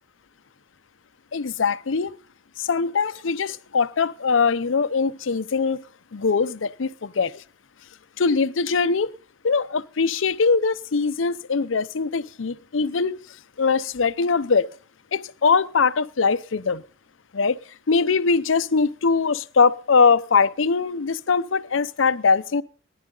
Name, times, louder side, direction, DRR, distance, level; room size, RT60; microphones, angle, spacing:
voice 1, 1.3-2.2 2.6-5.8 6.1-7.4 8.2-9.1 9.4-13.2 13.6-14.7 15.1-16.8 17.3-17.6 17.9-22.6, left 5 dB, 85° left, 0.6 m, -22 dB
19.0 x 11.0 x 3.9 m
head